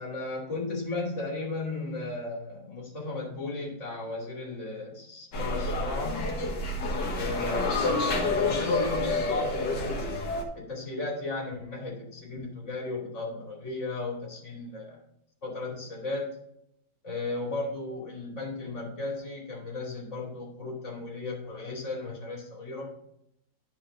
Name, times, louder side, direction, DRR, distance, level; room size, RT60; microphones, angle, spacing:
voice 1, 0.0-6.3 7.1-10.3 10.5-15.0 15.4-16.4 17.0-22.9, left 3 dB, 45° left, -3 dB, 3.0 m, -35 dB
sound 1, 5.3-10.4, left 2 dB, 90° left, 2.1 m, -28 dB
11.0 x 4.7 x 3.8 m, 0.74 s
omnidirectional pair, 1.8 m